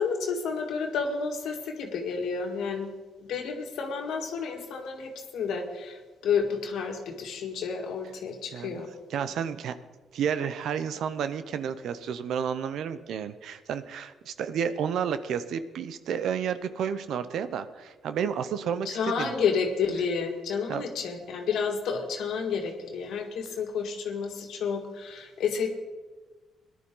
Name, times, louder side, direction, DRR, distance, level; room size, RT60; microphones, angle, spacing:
voice 1, 0.0-2.9 3.2-8.9 18.9-25.7, left 5 dB, 75° left, 3 dB, 1.9 m, -30 dB
voice 2, 9.1-9.8 10.1-19.3 20.7-20.8, right 7 dB, 75° right, 12 dB, 0.8 m, -31 dB
18.5 x 11.5 x 3.8 m, 1.3 s
cardioid pair, 90°, 0 cm